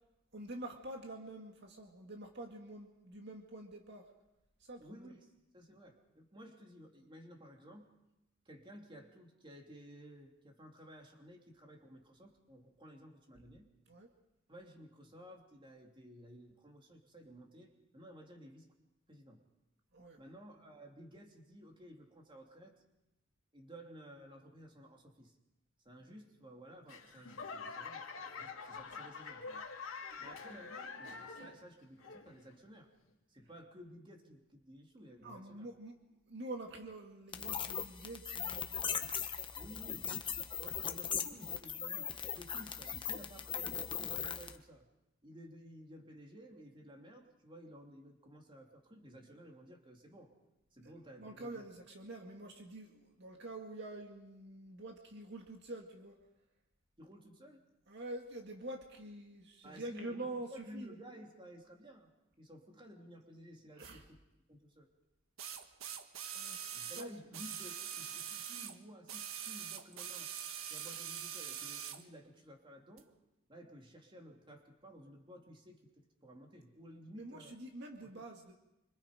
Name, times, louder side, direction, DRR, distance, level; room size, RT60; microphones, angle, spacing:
voice 1, 0.3-4.0 4.6-5.1 13.9-14.1 19.9-20.2 26.1-26.2 30.2-30.4 35.2-36.0 36.3-38.8 39.9-40.1 40.3-40.7 50.8-50.9 51.2-56.2 57.9-61.0 63.7-64.1 66.3-66.6 66.9-67.1 77.2-78.5, right 2 dB, 55° right, 2 dB, 2.1 m, -47 dB
voice 2, 4.8-7.9 8.4-13.7 14.5-18.7 19.1-19.4 20.2-22.8 23.5-25.4 25.8-28.1 28.4-29.7 30.2-32.9 33.3-35.7 39.5-40.1 40.6-44.9 45.2-50.3 50.7-51.6 57.0-57.7 59.6-62.1 62.4-64.2 64.5-64.9 66.7-70.3 70.7-73.1 73.5-75.8 76.2-77.6 78.0-78.2, equal, 25° right, 2 dB, 3.0 m, -55 dB
Laughter / Clapping / Crowd, 26.9-31.7 32.0-32.5 33.1-33.2, left 4 dB, 80° left, 2.8 m, -46 dB
sound 1, 37.3-44.6, left 7 dB, 25° left, 1.2 m, -39 dB
sound 2, 63.8-63.9 65.4-68.8 69.1-72.0 73.0-73.1, right 9 dB, 90° right, 1.4 m, -43 dB
26.0 x 25.0 x 5.1 m, 0.92 s
head